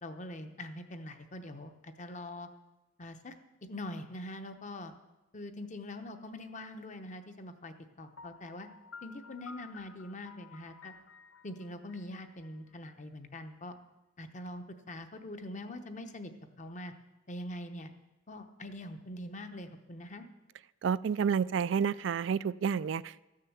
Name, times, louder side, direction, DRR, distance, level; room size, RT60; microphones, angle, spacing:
voice 1, 0.0-2.5 3.0-3.3 3.6-4.9 5.3-8.7 9.0-10.9 11.4-13.8 14.2-16.3 16.6-16.9 17.3-17.9 18.3-20.3, left 1 dB, 40° left, 8 dB, 0.9 m, -43 dB
Piano, 8.2-13.0, left 4 dB, 85° left, 0.6 m, -53 dB
voice 2, 20.8-23.2, right 7 dB, 70° right, 18 dB, 0.3 m, -30 dB
13.5 x 6.6 x 7.3 m, 1.0 s
head